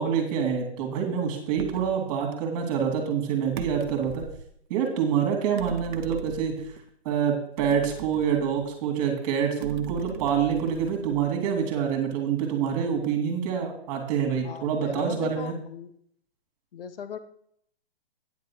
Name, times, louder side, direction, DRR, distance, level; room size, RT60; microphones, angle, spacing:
voice 1, 0.0-4.2 4.7-6.6 7.0-15.5, right 7 dB, 30° right, 2 dB, 2.9 m, -26 dB
sound 1, 1.6-2.0 3.6-4.5 5.6-6.8 7.6-8.9 9.6-11.5, right 7 dB, 45° right, 1.0 m, -40 dB
voice 2, 14.4-15.9 16.7-17.2, left 8 dB, 60° left, 11 dB, 1.1 m, -38 dB
9.8 x 7.4 x 4.8 m, 0.66 s
hypercardioid pair, 160°, 32 cm